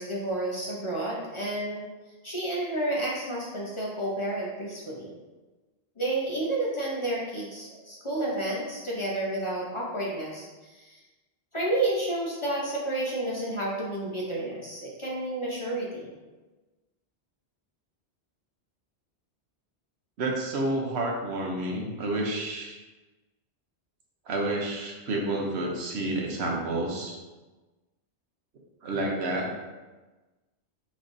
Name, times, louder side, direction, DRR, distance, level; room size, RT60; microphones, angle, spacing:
voice 1, 0.0-1.8 2.2-5.2 6.0-11.0 11.5-16.1, right 1 dB, 35° left, -4 dB, 0.6 m, -30 dB
voice 2, 20.2-22.8 24.3-27.2 28.8-29.7, right 2 dB, 80° right, -1 dB, 1.0 m, -29 dB
5.1 x 3.1 x 2.6 m, 1.2 s
omnidirectional pair, 1.1 m